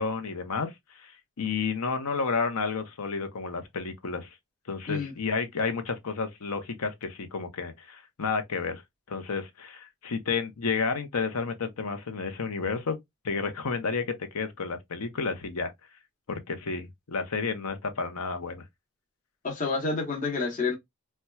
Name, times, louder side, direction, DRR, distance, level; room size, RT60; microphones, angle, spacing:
voice 1, 0.0-4.3 4.7-8.8 9.1-13.0 13.2-15.7 16.3-18.6, left 4 dB, 85° left, 0.7 m, -31 dB
voice 2, 19.4-20.8, left 4 dB, 35° left, 0.8 m, -29 dB
4.2 x 2.2 x 2.2 m
head